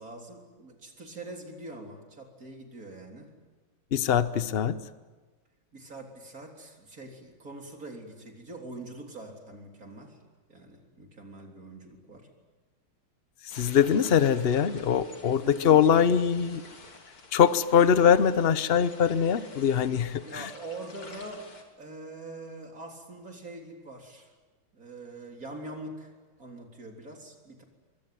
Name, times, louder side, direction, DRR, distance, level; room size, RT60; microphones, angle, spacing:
voice 1, 0.0-3.3 5.7-10.2 10.5-12.3 15.2-16.2 20.2-21.5 21.8-24.3 24.7-26.1 26.4-27.6, right 2 dB, 40° right, 2 dB, 4.1 m, -43 dB
voice 2, 3.9-4.8 13.5-16.6 17.3-20.5, left 8 dB, 50° left, 13 dB, 0.7 m, -22 dB
sound 1, 13.5-21.6, left 3 dB, 85° left, 4.0 m, -50 dB
25.0 x 23.5 x 9.3 m, 1.3 s
omnidirectional pair, 2.3 m